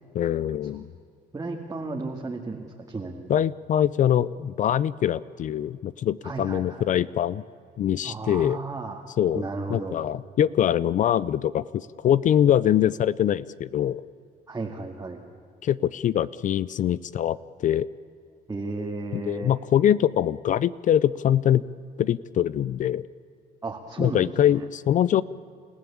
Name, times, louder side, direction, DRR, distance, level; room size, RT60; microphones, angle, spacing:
voice 1, 0.1-0.9 3.3-7.4 7.8-8.6 9.2-9.4 9.7-14.0 15.6-17.9 19.1-21.6 22.0-23.0 24.0-25.2, left 10 dB, 50° left, 19 dB, 0.5 m, -23 dB
voice 2, 1.3-3.4 6.2-6.9 8.0-9.1 9.3-10.0 14.5-15.2 18.5-19.5 23.6-24.3, right 3 dB, 20° right, 0 dB, 2.2 m, -34 dB
29.0 x 15.5 x 8.6 m, 2.5 s
cardioid pair, 110°, 17 cm